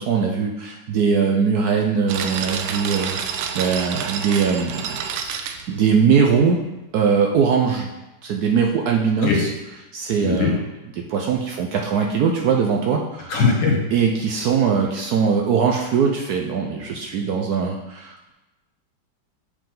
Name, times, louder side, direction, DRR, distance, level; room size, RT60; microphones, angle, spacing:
voice 1, 0.0-5.0 5.2-6.6 6.9-7.9 8.2-9.5 9.9-10.6 11.0-13.3 13.9-18.3, right 6 dB, 65° right, 1 dB, 1.0 m, -21 dB
sound 1, 2.1-6.4, right 7 dB, 85° right, 1.3 m, -29 dB
voice 2, 10.2-10.5 13.3-13.8, left 4 dB, 70° left, 0 dB, 1.9 m, -19 dB
7.3 x 4.9 x 3.8 m, 1.0 s
omnidirectional pair, 2.1 m